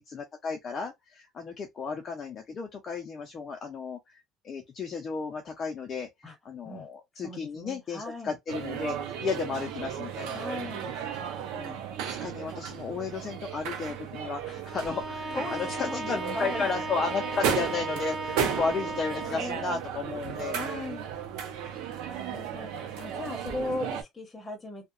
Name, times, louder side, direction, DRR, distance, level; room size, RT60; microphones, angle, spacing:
voice 1, 0.0-6.1 6.4-10.4 11.5-20.6, left 5 dB, 30° left, 0.4 m, -34 dB
voice 2, 7.2-8.4 10.3-10.9 14.4-14.5 15.3-16.7 18.3-18.4 19.3-19.8 20.5-21.1 22.0-24.9, left 2 dB, 10° left, 0.9 m, -38 dB
sound 1, 8.5-24.0, right 8 dB, 85° right, 0.5 m, -35 dB
Bowed string instrument, 14.7-19.5, right 2 dB, 40° right, 0.5 m, -36 dB
2.7 x 2.1 x 2.4 m
cardioid pair, 170°, 0 cm